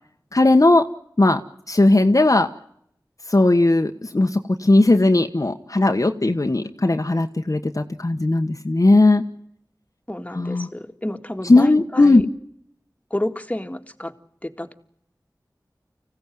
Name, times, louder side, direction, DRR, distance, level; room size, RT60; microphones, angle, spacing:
voice 1, 0.3-0.9 1.2-1.4 1.7-2.5 3.3-9.2 10.3-10.7 11.5-12.2, left 2 dB, 50° left, 5 dB, 1.2 m, -17 dB
voice 2, 10.1-12.3 13.1-14.1 14.4-14.7, left 1 dB, 20° left, 6 dB, 1.9 m, -29 dB
25.5 x 16.0 x 9.2 m, 0.73 s
wide cardioid pair, 40°, 7 cm